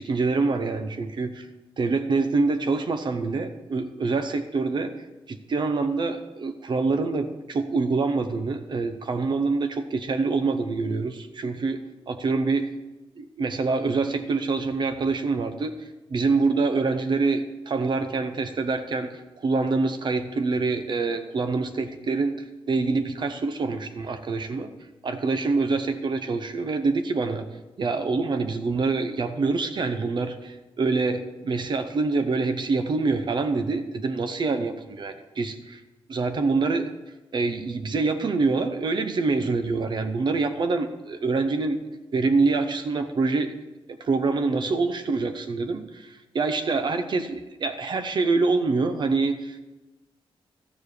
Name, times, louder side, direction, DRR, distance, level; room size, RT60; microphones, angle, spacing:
voice 1, 0.0-1.5 1.8-4.9 5.3-11.8 12.1-12.7 13.2-15.7 16.1-24.7 25.0-27.5 27.8-35.8 36.1-36.9 37.3-41.8 42.1-43.5 43.9-49.7, right 3 dB, 55° right, 8 dB, 0.7 m, -25 dB
13.0 x 7.1 x 4.9 m, 1.1 s
wide cardioid pair, 125°, 9 cm